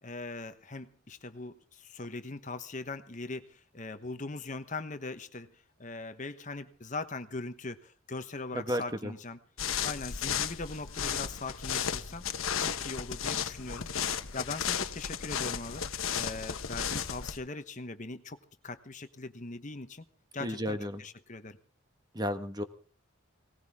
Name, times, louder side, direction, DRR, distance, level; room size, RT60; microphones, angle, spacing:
voice 1, 0.0-9.4 9.8-12.2 12.6-13.9 14.3-15.8 16.1-20.0 20.3-21.6, left 3 dB, 35° left, 10 dB, 1.1 m, -40 dB
voice 2, 8.5-9.1 20.4-21.0 22.1-22.6, equal, 20° right, 8 dB, 1.5 m, -33 dB
sound 1, 9.6-17.4, left 8 dB, 85° left, 1.2 m, -34 dB
19.5 x 19.0 x 3.6 m, 0.42 s
head